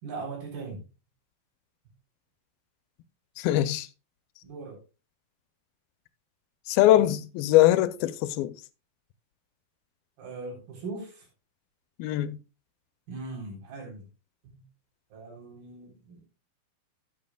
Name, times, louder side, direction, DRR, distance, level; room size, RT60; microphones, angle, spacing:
voice 1, 0.0-0.8 4.4-4.8 10.2-11.3 13.1-14.0 14.4-14.6 15.1-16.3, right 3 dB, 90° right, 5.5 m, -39 dB
voice 2, 3.4-3.9 6.7-8.6 12.0-12.4, left 14 dB, 85° left, 2.4 m, -22 dB
13.0 x 9.0 x 2.2 m
omnidirectional pair, 4.2 m